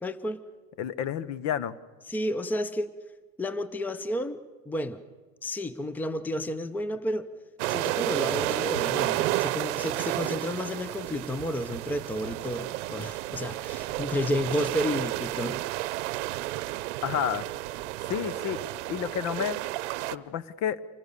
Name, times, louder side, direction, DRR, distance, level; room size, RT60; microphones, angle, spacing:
voice 1, 0.0-0.4 2.1-2.9 3.4-5.0 5.4-7.3 7.7-15.6, left 1 dB, 5° left, 14 dB, 0.7 m, -31 dB
voice 2, 0.8-1.8 17.0-17.5 18.1-18.6 18.9-19.6 20.1-20.8, left 9 dB, 50° left, 18 dB, 1.0 m, -30 dB
sound 1, 7.6-20.2, right 17 dB, 85° right, 0.8 m, -31 dB
26.5 x 19.5 x 6.8 m, 1.4 s
supercardioid pair, 135°, 35 cm